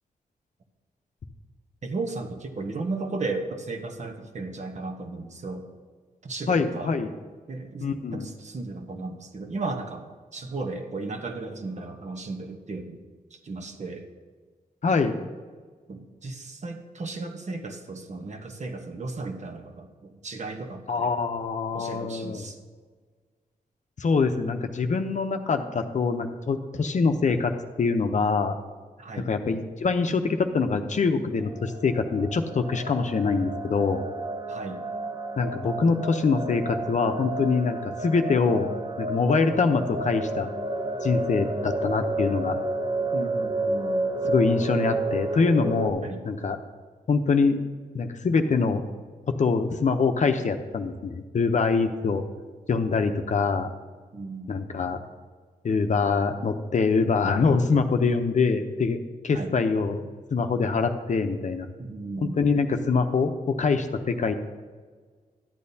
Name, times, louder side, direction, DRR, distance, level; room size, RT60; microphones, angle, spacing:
voice 1, 1.8-5.7 6.2-6.9 7.5-13.0 13.3-14.1 15.9-21.1 21.7-22.6 29.0-29.3 34.5-34.9 43.1-44.1 46.0-46.2 54.1-54.5 59.3-59.5 61.8-62.4, right 3 dB, 50° right, 4 dB, 1.1 m, -35 dB
voice 2, 6.5-7.1 7.8-8.3 14.8-15.2 20.9-22.5 24.0-27.5 27.8-28.5 29.3-34.0 35.4-40.5 41.0-42.6 44.2-46.6 47.1-47.6 47.9-48.8 49.3-52.2 52.7-53.7 54.5-55.0 55.6-61.7 62.2-64.3, left 4 dB, 50° left, 6 dB, 0.7 m, -24 dB
sound 1, 31.4-45.9, right 2 dB, 30° right, 0.8 m, -31 dB
12.0 x 8.5 x 2.8 m, 1.5 s
cardioid pair, 80°, 15 cm